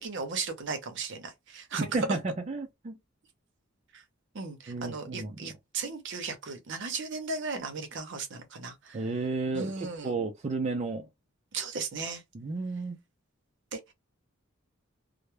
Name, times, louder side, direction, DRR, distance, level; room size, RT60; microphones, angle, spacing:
voice 1, 0.0-2.0 3.9-4.0 4.3-9.0 9.5-10.1 11.5-12.2 13.7-13.9, right 4 dB, 65° right, 0.7 m, -36 dB
voice 2, 1.8-2.2 2.5-3.0 4.7-5.4 8.9-11.1 12.3-13.0, right 3 dB, 35° right, 0.4 m, -32 dB
2.2 x 2.0 x 3.0 m
head